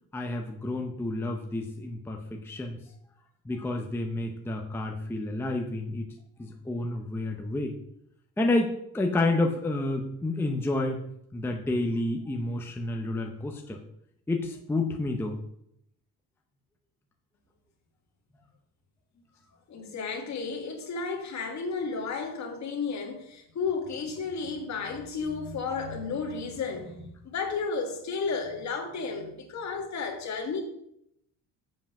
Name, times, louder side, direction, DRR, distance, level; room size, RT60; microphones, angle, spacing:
voice 1, 0.1-2.8 3.5-6.1 6.4-7.7 8.4-11.0 11.3-13.8 14.3-15.4, left 2 dB, 5° left, 0.6 m, -30 dB
voice 2, 19.7-30.6, left 4 dB, 45° left, 1.7 m, -33 dB
7.5 x 5.5 x 5.9 m
cardioid pair, 155°, 38 cm